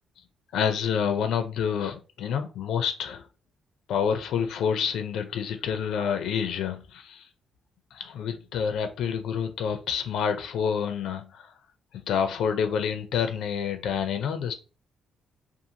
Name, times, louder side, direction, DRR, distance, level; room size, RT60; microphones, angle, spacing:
voice 1, 0.5-3.2 3.9-7.3 7.9-11.5 11.9-14.5, left 7 dB, 80° left, 0.4 m, -28 dB
2.6 x 2.4 x 2.8 m
cardioid pair, 90°, 0 cm